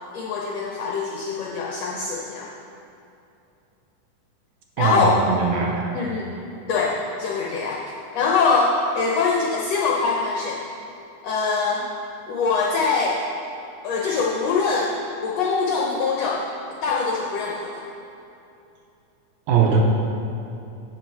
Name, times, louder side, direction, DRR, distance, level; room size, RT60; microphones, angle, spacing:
voice 1, 0.1-2.5 4.8-5.2 5.9-6.3 6.7-6.9 7.2-7.8 8.1-10.6 11.2-11.8 12.3-13.2 13.8-16.5 16.8-17.8, left 4 dB, 75° left, -2 dB, 1.5 m, -23 dB
voice 2, 4.8-5.9 19.5-19.8, right 5 dB, 75° right, 0 dB, 2.1 m, -20 dB
7.6 x 6.6 x 5.5 m, 2.7 s
omnidirectional pair, 3.7 m